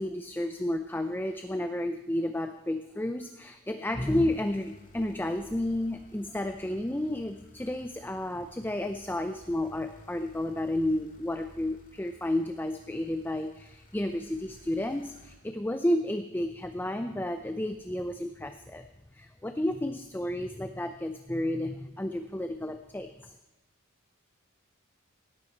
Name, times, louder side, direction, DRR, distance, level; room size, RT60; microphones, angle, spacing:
voice 1, 0.0-18.9 19.1-23.4, left 1 dB, 10° left, 8 dB, 0.5 m, -31 dB
sound 1, 4.1-15.4, left 1 dB, 35° left, 2.1 m, -55 dB
18.0 x 13.5 x 4.5 m, 1.0 s
head